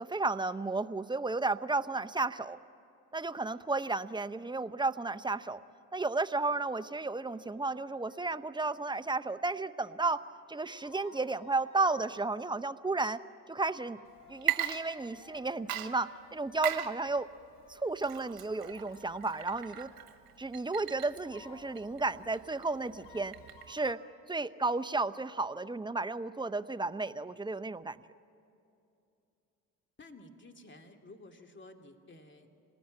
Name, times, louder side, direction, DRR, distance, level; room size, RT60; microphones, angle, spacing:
voice 1, 0.0-2.6 3.1-5.6 5.9-13.2 13.5-14.0 14.3-17.3 17.7-19.9 20.4-23.3 23.7-24.0 24.3-28.0, right 3 dB, 10° right, 11 dB, 0.8 m, -33 dB
sound 1, 7.3-12.3 13.7-20.1 21.2-24.0, left 4 dB, 85° left, 4.6 m, -58 dB
Water / Liquid, 14.3-15.4 15.7-23.9, right 13 dB, 60° right, 1.5 m, -39 dB
voice 2, 30.0-32.5, left 2 dB, 30° left, 4 dB, 2.5 m, -53 dB
27.0 x 19.5 x 9.0 m, 2.7 s
hypercardioid pair, 55°, 40 cm